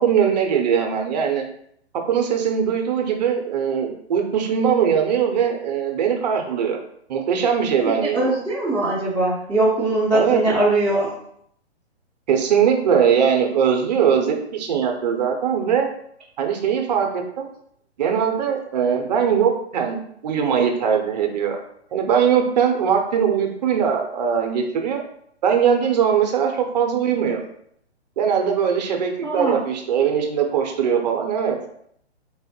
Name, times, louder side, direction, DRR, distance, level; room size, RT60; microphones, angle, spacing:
voice 1, 0.0-1.4 2.1-6.8 7.1-8.3 10.1-10.4 12.3-15.9 16.4-17.5 18.0-21.6 21.9-25.0 25.4-27.4 28.2-31.6, right 7 dB, 40° right, 3 dB, 0.7 m, -21 dB
voice 2, 7.9-11.1 29.2-29.6, right 2 dB, ahead, -11 dB, 0.7 m, -21 dB
3.9 x 2.0 x 4.3 m, 0.68 s
hypercardioid pair, 140°, 34 cm